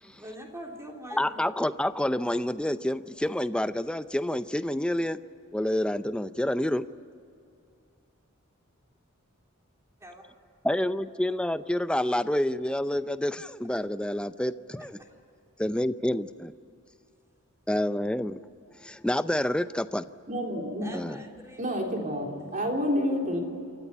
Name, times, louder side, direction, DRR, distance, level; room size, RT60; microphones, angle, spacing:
voice 1, 0.0-1.5 10.0-10.2 15.0-15.1 20.8-21.6 22.5-22.6, equal, 15° right, 1 dB, 3.1 m, -44 dB
voice 2, 1.1-5.2 5.5-6.9 10.6-15.0 15.6-16.5 17.7-18.4 18.8-20.0 20.9-21.2, left 1 dB, 5° left, 13 dB, 0.5 m, -28 dB
voice 3, 20.3-21.1 21.6-23.4, equal, 40° right, 1 dB, 3.6 m, -29 dB
27.5 x 14.0 x 10.0 m, 2.6 s
head